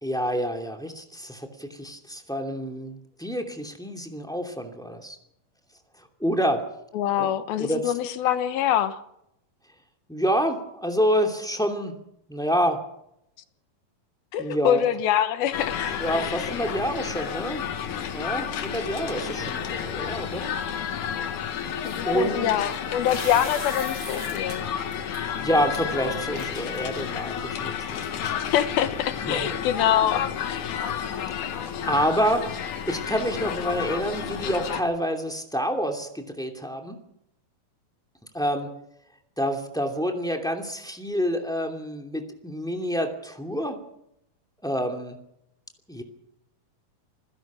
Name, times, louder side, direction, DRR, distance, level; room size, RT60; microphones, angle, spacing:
voice 1, 0.0-5.2 6.0-6.6 7.2-7.3 7.6-7.9 10.1-11.9 12.3-12.8 14.4-14.8 16.0-20.5 22.1-22.6 24.9-25.1 25.3-28.4 29.3-29.6 31.5-37.0 38.3-38.7 39.4-43.8 44.6-45.2 45.9-46.0, equal, ahead, 4 dB, 1.8 m, -28 dB
voice 2, 6.9-9.0 14.3-15.8 16.1-16.4 21.9-24.7 28.5-30.7, left 10 dB, 75° left, 11 dB, 2.9 m, -25 dB
sound 1, 15.5-34.8, left 8 dB, 60° left, 2.7 m, -31 dB
sound 2, 19.0-19.7 21.7-24.6 24.9-25.2 25.7-25.8 26.1-27.3, right 2 dB, 35° right, 5.6 m, -40 dB
27.5 x 16.5 x 6.3 m, 0.79 s
omnidirectional pair, 4.4 m